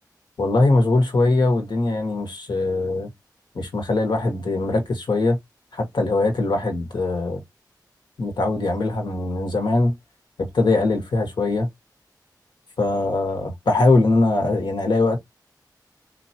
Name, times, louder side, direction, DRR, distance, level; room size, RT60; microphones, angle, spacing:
voice 1, 0.4-3.1 3.5-5.4 5.7-7.4 8.2-9.9 10.5-11.7 12.8-15.2, left 2 dB, 80° left, 1.6 m, -21 dB
4.3 x 3.0 x 2.9 m
wide cardioid pair, 95°, 7 cm